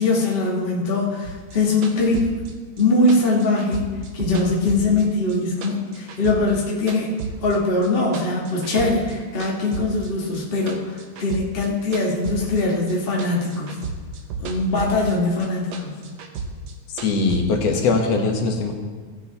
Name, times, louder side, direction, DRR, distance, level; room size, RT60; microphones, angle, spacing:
voice 1, 0.0-2.3 2.8-3.8 4.1-7.1 7.4-13.8 14.4-16.0, left 2 dB, 40° left, -4 dB, 0.8 m, -22 dB
sound 1, 1.2-5.4 5.6-7.6 7.8-9.1 9.4-12.9 13.2-15.1 15.4-17.4, right 4 dB, 85° right, 1.1 m, -33 dB
voice 2, 17.0-18.7, left 4 dB, 65° left, 2 dB, 2.1 m, -21 dB
16.0 x 8.4 x 3.4 m, 1.5 s
omnidirectional pair, 3.4 m